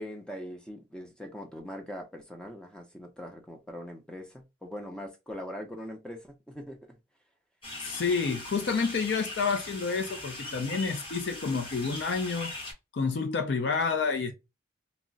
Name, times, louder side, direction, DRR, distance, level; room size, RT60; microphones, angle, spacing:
voice 1, 0.0-6.8, equal, 5° left, 0.4 m, -41 dB
sound 1, 7.6-12.7, left 2 dB, 30° left, 0.9 m, -40 dB
voice 2, 7.8-12.5 12.9-14.3, left 5 dB, 70° left, 0.4 m, -29 dB
2.3 x 2.0 x 3.8 m
head